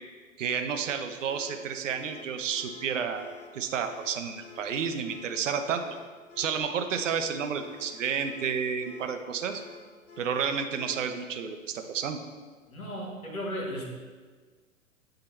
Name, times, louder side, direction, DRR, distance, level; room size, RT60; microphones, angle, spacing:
voice 1, 0.4-5.8 6.4-9.6 10.2-12.2, right 7 dB, 60° right, 7 dB, 0.7 m, -31 dB
sound 1, 1.2-11.2, left 7 dB, 35° left, 0.9 m, -50 dB
voice 2, 12.7-13.9, equal, 85° left, 0 dB, 1.4 m, -35 dB
7.8 x 2.9 x 4.2 m, 1.5 s
figure-of-eight pair, 110°, 42 cm